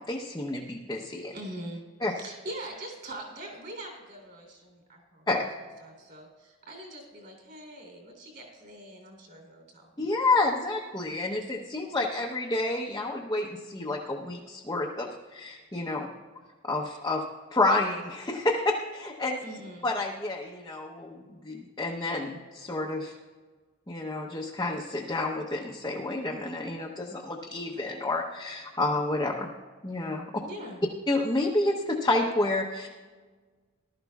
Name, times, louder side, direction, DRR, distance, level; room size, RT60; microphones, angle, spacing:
voice 1, 0.0-1.3 2.0-2.1 5.3-5.4 10.0-16.1 16.6-17.2 17.5-19.4 19.8-23.1 23.9-29.5 29.8-30.3 31.1-32.9, left 2 dB, 15° left, -2 dB, 0.7 m, -29 dB
voice 2, 1.3-1.8 2.1-5.3 5.8-9.9 19.4-19.9 30.4-30.8, right 1 dB, 45° right, 1 dB, 3.2 m, -43 dB
19.0 x 12.5 x 2.3 m, 1.4 s
head